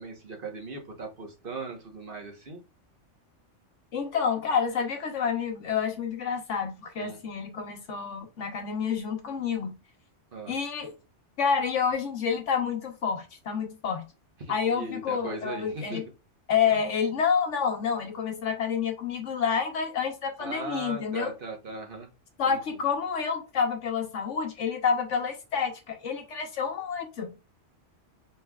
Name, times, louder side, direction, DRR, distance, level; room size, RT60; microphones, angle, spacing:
voice 1, 0.0-2.6 7.0-7.2 10.3-10.6 14.4-16.0 16.6-16.8 20.4-22.1 22.5-22.6, right 3 dB, 50° right, 2 dB, 1.2 m, -38 dB
voice 2, 3.9-9.7 10.5-11.0 11.4-14.0 14.5-16.0 16.5-21.3 22.4-27.3, left 6 dB, 80° left, 4 dB, 1.3 m, -28 dB
5.5 x 3.2 x 2.3 m, 0.28 s
omnidirectional pair, 1.2 m